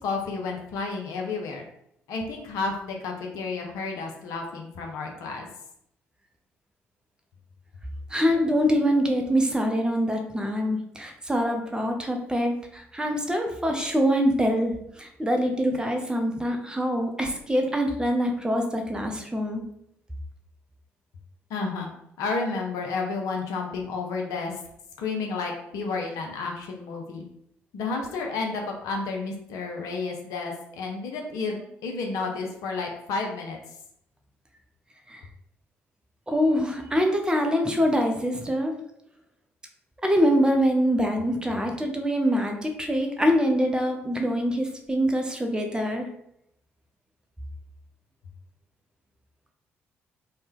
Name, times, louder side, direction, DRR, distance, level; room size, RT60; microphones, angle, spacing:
voice 1, 0.0-1.6 2.1-5.5 21.5-21.9 22.2-24.5 25.0-27.2 27.7-33.6, left 4 dB, 60° left, 1 dB, 0.5 m, -31 dB
voice 2, 8.1-14.7 15.0-19.6 35.1-35.2 36.3-38.7 40.0-46.1, equal, 10° right, 3 dB, 0.6 m, -24 dB
2.7 x 2.1 x 3.5 m, 0.74 s
figure-of-eight pair, 45°, 6 cm